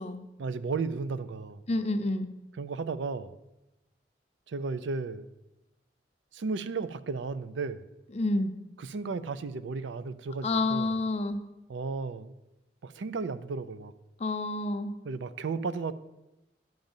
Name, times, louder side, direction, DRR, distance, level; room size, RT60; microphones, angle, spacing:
voice 1, 0.4-1.6 2.6-3.4 4.5-5.3 6.3-7.9 8.8-10.9 11.7-12.3 12.8-13.9 15.0-15.9, right 4 dB, 85° right, 14 dB, 0.5 m, -34 dB
voice 2, 1.7-2.3 8.1-8.6 10.4-11.4 14.2-14.9, left 2 dB, 35° left, 7 dB, 0.6 m, -29 dB
10.5 x 3.9 x 7.2 m, 0.95 s
head